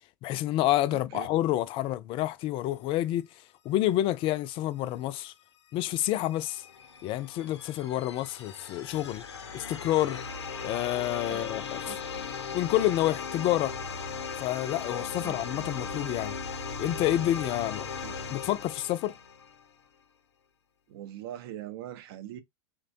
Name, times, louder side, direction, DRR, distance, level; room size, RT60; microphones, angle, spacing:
voice 1, 0.2-3.3 3.7-5.3 5.7-6.6 7.0-9.3 9.5-10.2 10.6-12.0 12.5-13.7 14.4-16.4 16.8-17.9 18.3-19.1, left 14 dB, 40° left, 0.4 m, -28 dB
voice 2, 0.9-1.3 11.3-11.5 11.8-12.0 15.2-15.4 17.9-18.2 20.9-22.4, right 12 dB, 65° right, 0.6 m, -42 dB
sound 1, 5.8-19.7, left 5 dB, 90° left, 0.6 m, -38 dB
3.2 x 2.2 x 2.6 m
hypercardioid pair, 95°, 14 cm